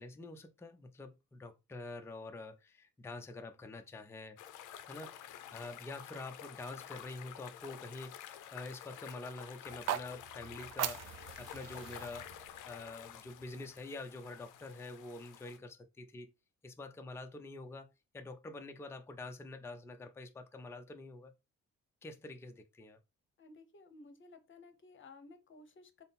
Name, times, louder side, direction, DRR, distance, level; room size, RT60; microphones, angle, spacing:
voice 1, 0.0-4.4 4.8-16.3 16.6-17.9 18.1-21.3 22.0-23.0, left 2 dB, 10° left, 0.4 m, -47 dB
sound 1, 4.4-15.6, left 10 dB, 85° left, 0.5 m, -50 dB
sound 2, 9.7-13.8, right 11 dB, 60° right, 0.4 m, -42 dB
voice 2, 23.4-26.0, left 3 dB, 40° left, 0.8 m, -56 dB
3.6 x 2.0 x 4.0 m
cardioid pair, 90°, 30 cm